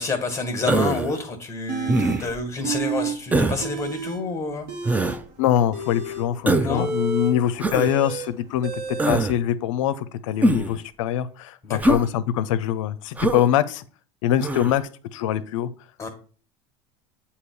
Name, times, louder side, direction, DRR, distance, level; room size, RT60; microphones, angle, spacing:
voice 1, 0.0-4.7 6.6-6.9 11.6-12.0 16.0-16.1, left 3 dB, 15° left, 4 dB, 1.4 m, -28 dB
Human voice, 0.7-1.2 1.9-2.4 3.3-3.6 4.9-5.2 6.5-6.8 7.6-7.9 9.0-9.3 10.4-10.8 11.8-12.1 13.2-13.5 14.4-14.7, right 2 dB, 10° right, 0.5 m, -22 dB
sound 1, 1.7-2.2 2.6-3.2 3.4-4.2 4.6-9.2, right 5 dB, 75° right, 1.5 m, -30 dB
voice 2, 5.4-13.8 14.2-14.8 15.1-15.7, left 11 dB, 85° left, 15 dB, 0.5 m, -23 dB
8.2 x 2.8 x 4.6 m, 0.41 s
supercardioid pair, 95°, 16 cm